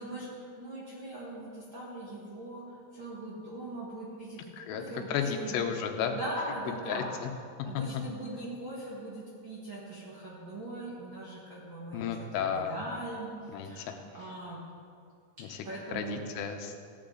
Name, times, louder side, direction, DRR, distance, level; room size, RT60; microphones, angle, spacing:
voice 1, 0.0-5.5 6.1-7.1 7.6-13.4 13.6-14.6 15.6-16.3, right 1 dB, 60° right, -6 dB, 1.3 m, -41 dB
voice 2, 4.6-6.2 6.7-7.3 11.9-12.8 13.5-13.9 15.4-15.6 15.9-16.8, left 7 dB, 85° left, 5 dB, 3.0 m, -33 dB
15.0 x 10.0 x 3.9 m, 2.3 s
omnidirectional pair, 4.9 m